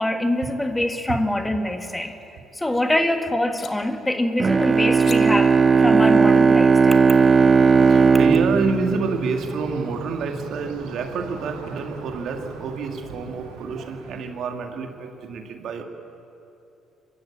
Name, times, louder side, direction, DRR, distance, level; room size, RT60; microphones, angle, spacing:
voice 1, 0.0-2.2 2.5-7.1, left 1 dB, 10° left, 1.5 m, -24 dB
sound 1, 1.7-2.8 3.6-3.7 5.0-5.2, left 7 dB, 50° left, 1.7 m, -42 dB
Bowed string instrument, 4.4-9.9, right 5 dB, 35° right, 0.5 m, -17 dB
sound 2, 7.1-14.3, right 4 dB, 85° right, 2.6 m, -41 dB
voice 2, 7.2-15.8, right 4 dB, 65° right, 2.0 m, -28 dB
23.0 x 13.5 x 8.7 m
supercardioid pair, 65°, 0 cm